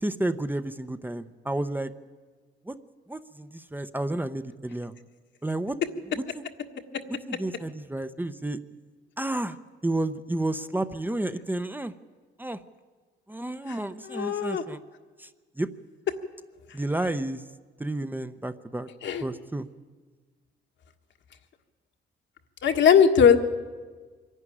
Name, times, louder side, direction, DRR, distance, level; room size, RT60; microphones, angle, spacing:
voice 1, 0.0-1.9 2.7-2.8 3.1-4.9 5.4-5.8 6.3-6.4 7.3-8.6 9.2-9.6 9.8-11.9 12.4-12.6 13.3-14.8 15.2-15.3 15.6-15.7 16.7-17.4 17.8-18.9 19.2-19.7, right 1 dB, 10° right, 10 dB, 0.8 m, -31 dB
voice 2, 14.0-14.6 19.0-19.2 22.6-23.4, left 7 dB, 65° left, 6 dB, 1.6 m, -19 dB
24.0 x 11.0 x 9.9 m, 1.4 s
cardioid pair, 90°, 20 cm